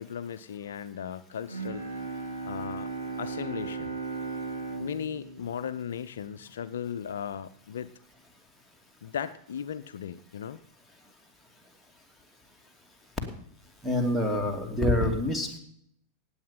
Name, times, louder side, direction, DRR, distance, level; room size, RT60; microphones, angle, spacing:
voice 1, 0.0-1.9 2.4-2.9 3.2-4.0 4.8-7.9 9.0-10.6, left 8 dB, 65° left, 13 dB, 0.5 m, -36 dB
Bowed string instrument, 1.5-6.6, right 4 dB, 85° right, 3.3 m, -37 dB
voice 2, 13.8-15.6, left 1 dB, 5° right, 4 dB, 2.7 m, -26 dB
18.0 x 8.6 x 5.6 m, 0.69 s
figure-of-eight pair, 90°, 0 cm